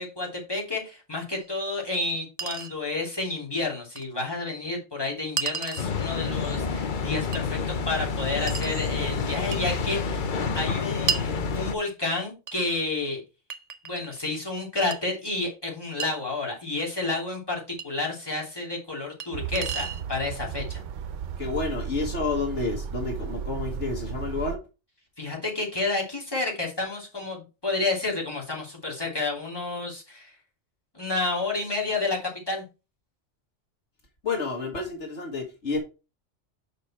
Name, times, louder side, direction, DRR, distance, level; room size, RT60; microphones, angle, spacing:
voice 1, 0.0-10.3 10.5-13.2 13.8-20.8 25.2-30.3 30.9-32.6, left 3 dB, 20° left, -3 dB, 3.1 m, -30 dB
Chink clink, 1.4-1.5 2.4-2.7 4.0-4.1 5.4-5.9 7.3-7.5 8.5-8.8 9.5-9.7 11.1-11.3 12.5-12.6 13.5-14.2 14.9-15.0 16.0-16.1 17.8-17.9 19.2-19.3 19.5-20.0, right 5 dB, 45° right, 0.6 m, -31 dB
sound 1, 5.8-11.7, left 5 dB, 50° left, 0.8 m, -29 dB
sound 2, 19.3-24.6, right 7 dB, 85° right, 1.0 m, -34 dB
voice 2, 21.4-24.6 34.2-35.8, left 3 dB, 70° left, 2 dB, 1.7 m, -30 dB
6.8 x 5.2 x 4.3 m, 0.29 s
omnidirectional pair, 1.2 m